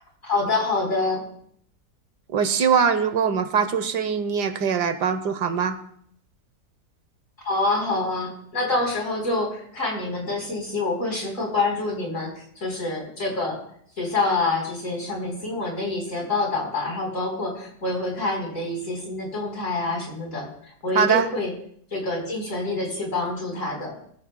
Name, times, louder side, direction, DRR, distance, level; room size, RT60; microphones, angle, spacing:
voice 1, 0.2-1.2 7.4-13.6 14.0-21.5 21.9-24.0, left 2 dB, 50° left, 0 dB, 4.5 m, -26 dB
voice 2, 2.3-5.8 20.9-21.3, right 6 dB, 80° right, 10 dB, 1.6 m, -22 dB
20.0 x 14.0 x 2.2 m, 0.63 s
omnidirectional pair, 1.8 m